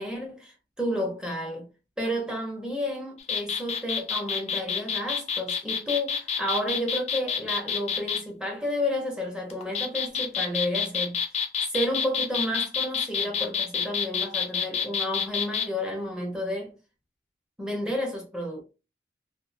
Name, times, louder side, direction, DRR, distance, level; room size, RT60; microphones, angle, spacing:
voice 1, 0.0-1.7 2.0-11.2 11.7-16.7 17.6-18.6, left 1 dB, 5° right, 0.8 m, -31 dB
sound 1, 3.2-8.2 9.5-15.7, left 7 dB, 35° left, 0.4 m, -28 dB
2.6 x 2.5 x 2.5 m
head